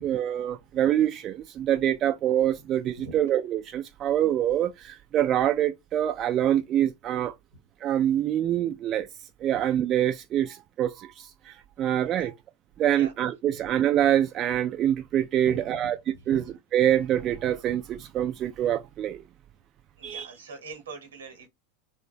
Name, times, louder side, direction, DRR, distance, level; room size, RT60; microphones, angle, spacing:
voice 1, 0.0-7.3 7.8-9.1 9.4-12.3 12.8-16.0 16.3-16.4 16.7-19.2 20.0-20.3, right 11 dB, 40° right, 0.3 m, -25 dB
voice 2, 15.4-16.5 20.0-21.5, right 3 dB, 85° right, 1.0 m, -43 dB
2.9 x 2.2 x 2.4 m
hypercardioid pair, 95°, 0 cm